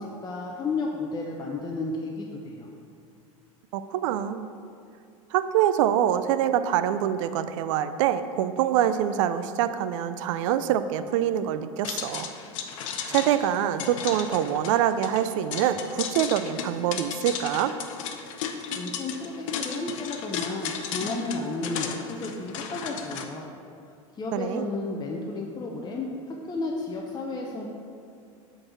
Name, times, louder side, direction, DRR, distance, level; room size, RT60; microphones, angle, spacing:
voice 1, 0.0-2.7 18.7-23.5 24.2-27.7, left 3 dB, 25° left, -1 dB, 0.8 m, -33 dB
voice 2, 3.7-4.5 5.3-12.3 13.1-17.7 24.3-24.7, right 10 dB, 65° right, 11 dB, 0.5 m, -25 dB
sound 1, 11.8-23.2, left 7 dB, 70° left, 0.7 m, -35 dB
7.7 x 4.0 x 6.1 m, 2.4 s
hypercardioid pair, 95°, 17 cm